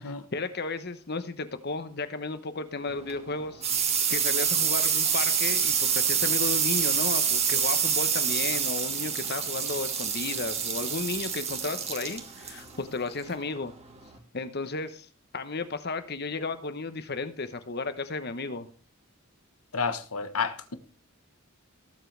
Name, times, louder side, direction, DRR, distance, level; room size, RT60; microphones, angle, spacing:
voice 1, 0.0-3.6 4.1-13.7 14.3-15.1 15.3-18.7, left 3 dB, 50° left, 1.0 m, -34 dB
sound 1, 2.9-14.2, right 7 dB, 30° right, 1.6 m, -27 dB
voice 2, 19.7-20.8, left 5 dB, 85° left, 1.3 m, -30 dB
19.0 x 7.5 x 3.4 m
head